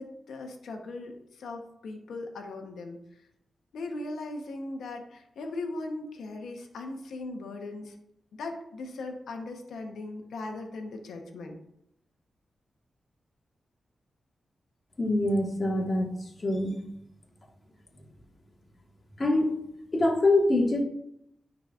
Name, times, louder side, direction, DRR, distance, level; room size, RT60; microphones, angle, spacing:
voice 1, 0.0-3.0 3.7-7.9 8.3-11.6, left 2 dB, 85° left, 3 dB, 0.9 m, -38 dB
voice 2, 15.0-16.1 16.4-16.8 19.2-19.5 19.9-20.8, left 2 dB, 45° left, 0 dB, 1.6 m, -24 dB
9.7 x 4.0 x 2.4 m, 0.76 s
cardioid pair, 55°, 0 cm